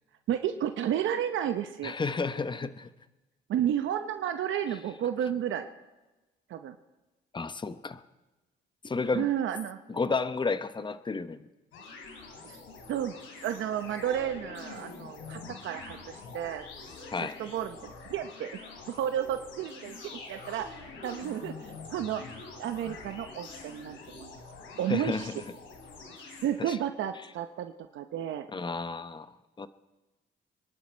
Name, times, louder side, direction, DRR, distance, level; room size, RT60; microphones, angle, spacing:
voice 1, 0.3-2.0 3.5-5.7 6.5-6.7 9.1-9.8 12.4-12.6 12.9-13.2 13.4-16.6 17.2-18.5 18.9-20.0 20.3-20.7 21.0-24.3 24.8-25.3 26.4-28.5, right 10 dB, 75° right, 7 dB, 0.9 m, -32 dB
voice 2, 1.8-2.9 7.3-8.0 8.8-9.3 9.9-11.5 17.1-17.4 24.9-25.3 26.6-26.8 28.5-29.7, left 4 dB, 25° left, 12 dB, 0.8 m, -32 dB
sound 1, 11.7-26.5, left 4 dB, 90° left, 3.4 m, -46 dB
24.5 x 11.0 x 4.5 m, 1.1 s
cardioid pair, 90°, 20 cm